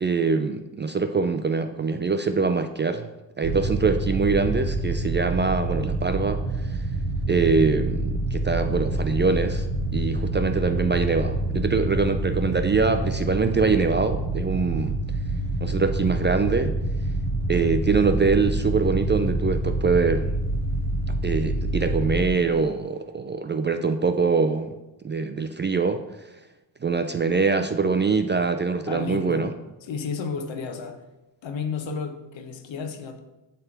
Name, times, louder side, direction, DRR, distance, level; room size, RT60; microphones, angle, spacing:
voice 1, 0.0-3.1 3.4-6.8 7.3-9.7 9.9-14.9 15.6-16.7 17.5-20.4 21.2-24.7 25.0-26.0 26.8-29.5, right 4 dB, 25° right, 8 dB, 0.3 m, -24 dB
sound 1, 3.4-22.3, right 2 dB, 80° right, 1.3 m, -27 dB
voice 2, 28.9-29.5 29.8-31.0 31.4-33.2, left 5 dB, 70° left, 7 dB, 1.1 m, -32 dB
7.7 x 3.5 x 5.9 m, 1.0 s
cardioid pair, 90°, 47 cm